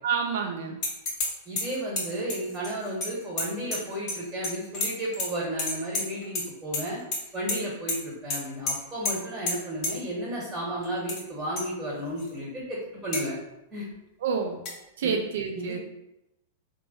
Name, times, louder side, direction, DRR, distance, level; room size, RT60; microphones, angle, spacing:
voice 1, 0.0-0.8 14.2-14.6 15.0-15.8, right 6 dB, 65° right, 2 dB, 0.4 m, -28 dB
sound 1, 0.8-1.3 1.6-4.2 4.4-5.3 5.6-6.4 6.7-7.2 7.5-7.6 7.9-8.0 8.3-8.4 8.7-8.8 9.0-9.1 9.5-9.6 9.8-9.9 10.8-11.2 11.6-11.7 12.2-12.3 13.1-13.2 14.6-14.7, left 2 dB, 40° left, 1.0 m, -29 dB
voice 2, 1.4-7.0 7.3-13.3 13.7-13.8 15.0-15.1 15.5-15.8, right 1 dB, 15° right, -6 dB, 1.4 m, -33 dB
3.0 x 2.2 x 4.0 m, 0.88 s
figure-of-eight pair, 100°, 0 cm